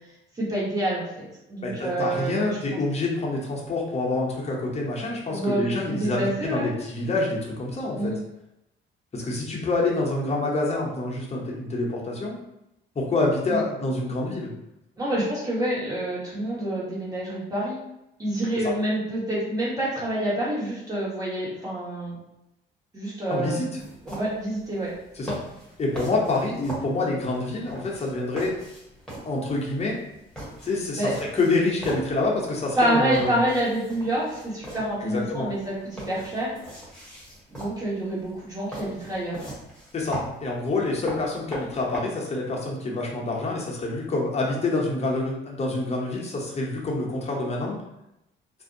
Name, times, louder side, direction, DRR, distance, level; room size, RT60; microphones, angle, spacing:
voice 1, 0.3-2.5 5.3-5.6 5.9-6.7 7.9-8.1 13.5-13.6 15.0-17.8 18.2-22.2 22.9-23.8 24.0-24.9 31.0-31.1 32.8-36.5 37.5-39.4, right 1 dB, 20° right, -7 dB, 1.2 m, -27 dB
voice 2, 1.6-8.1 9.1-12.4 13.0-14.5 23.3-23.7 25.2-25.4 25.8-28.6 29.2-30.0 30.6-33.4 35.0-35.5 39.9-47.8, left 2 dB, 30° left, -2 dB, 0.8 m, -27 dB
sound 1, 23.8-42.0, right 1 dB, 5° left, 1.1 m, -41 dB
2.5 x 2.1 x 2.6 m, 0.86 s
cardioid pair, 90°, 20 cm